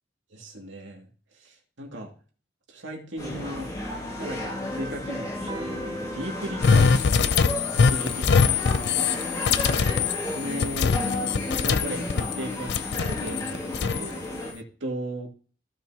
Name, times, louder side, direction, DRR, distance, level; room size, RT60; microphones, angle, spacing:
voice 1, 0.3-1.1 1.3-2.1 2.7-3.7 4.1-8.2 8.6-9.1 9.6-9.9 10.3-11.0 11.6-15.3, right 1 dB, 85° right, 1 dB, 2.3 m, -37 dB
sound 1, 3.2-14.5, left 1 dB, 20° left, 2.3 m, -33 dB
sound 2, 5.5-9.3 10.2-10.3, right 2 dB, 20° right, 1.5 m, -44 dB
sound 3, 6.6-12.4 12.7-14.1, left 5 dB, 60° left, 0.4 m, -23 dB
15.5 x 5.6 x 2.9 m, 0.39 s
head